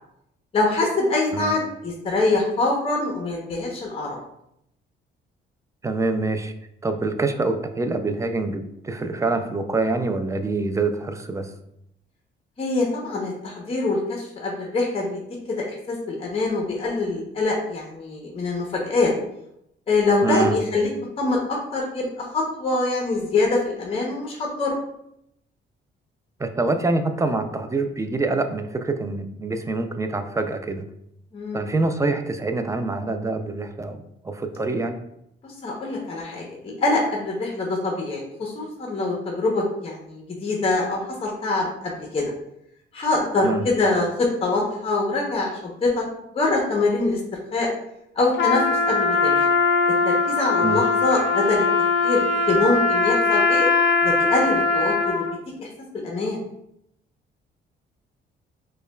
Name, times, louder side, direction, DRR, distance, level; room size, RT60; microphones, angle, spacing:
voice 1, 0.5-4.2 12.6-15.2 15.5-19.1 19.9-20.9 21.2-24.7 31.3-31.7 35.4-42.3 42.9-46.1 46.3-47.2 47.5-47.7 48.2-49.4 50.0-51.7 52.0-53.7 54.0-56.4, left 2 dB, 30° left, -2 dB, 0.8 m, -24 dB
voice 2, 5.8-6.5 6.8-11.5 20.2-20.6 26.4-30.9 31.5-35.0 43.4-43.7 50.6-50.8, right 3 dB, 15° right, 7 dB, 0.3 m, -25 dB
Trumpet, 48.3-55.4, left 4 dB, 65° left, 0.5 m, -21 dB
5.2 x 2.2 x 2.2 m, 0.78 s
cardioid pair, 90°, 20 cm